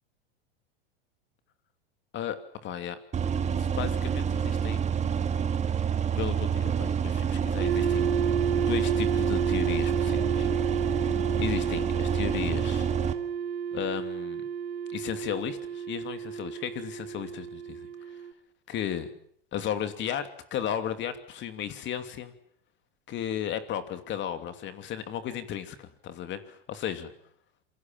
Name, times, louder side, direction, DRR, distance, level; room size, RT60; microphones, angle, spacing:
voice 1, 2.1-3.0 3.5-5.2 6.1-8.3 8.5-10.5 11.3-12.9 13.7-14.4 14.9-18.2 18.7-19.1 19.5-22.3 23.1-27.1, left 10 dB, 40° left, 10 dB, 2.8 m, -35 dB
sound 1, 3.1-13.1, right 7 dB, 25° right, 2.1 m, -28 dB
sound 2, 7.6-18.3, right 7 dB, 85° right, 1.9 m, -31 dB
27.5 x 22.0 x 7.5 m, 0.65 s
hypercardioid pair, 110°, 30 cm